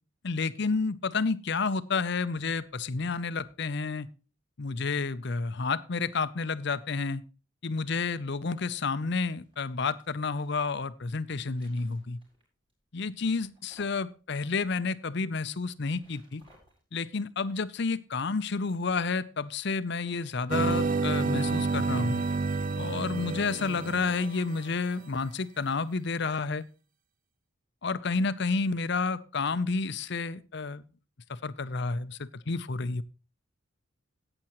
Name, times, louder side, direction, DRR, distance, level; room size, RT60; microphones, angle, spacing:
voice 1, 0.2-4.1 4.6-7.2 7.6-12.2 12.9-16.4 16.9-22.2 22.8-26.6 27.8-30.8 31.4-33.0, left 4 dB, 55° left, 14 dB, 0.6 m, -30 dB
sound 1, 8.9-10.7 11.2-12.4 12.7-12.8 13.3-14.1 14.4-14.5 15.7-16.8 18.7-22.8, equal, 25° right, 5.4 m, -59 dB
sound 2, 20.5-24.8, right 4 dB, 40° right, 0.6 m, -29 dB
14.5 x 8.9 x 3.1 m, 0.33 s
head